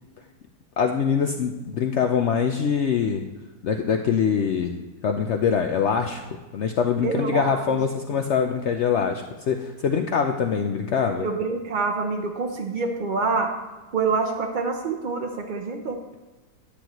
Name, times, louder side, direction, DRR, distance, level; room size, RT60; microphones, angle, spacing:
voice 1, 0.8-3.3 3.6-4.8 5.0-6.2 6.5-11.3, left 6 dB, 70° left, 4 dB, 0.6 m, -23 dB
voice 2, 7.0-7.8 11.2-13.5 13.9-16.0, right 4 dB, 60° right, 3 dB, 0.5 m, -26 dB
10.0 x 7.8 x 3.0 m, 1.2 s
omnidirectional pair, 1.7 m